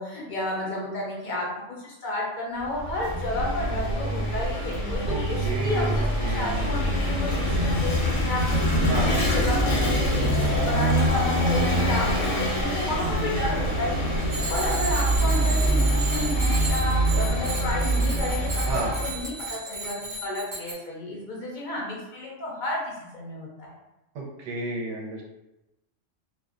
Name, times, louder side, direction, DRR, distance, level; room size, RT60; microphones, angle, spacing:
voice 1, 0.0-23.7, left 2 dB, 60° left, -4 dB, 0.5 m, -32 dB
Vehicle / Engine, 2.6-19.3, equal, 80° left, 1.0 m, -24 dB
voice 2, 5.1-7.5 8.9-9.4 18.7-18.9 24.1-25.2, right 2 dB, 75° right, -2 dB, 0.9 m, -33 dB
Bicycle bell, 14.3-20.7, right 2 dB, 40° right, 0.5 m, -34 dB
2.5 x 2.1 x 2.4 m, 0.96 s
omnidirectional pair, 1.3 m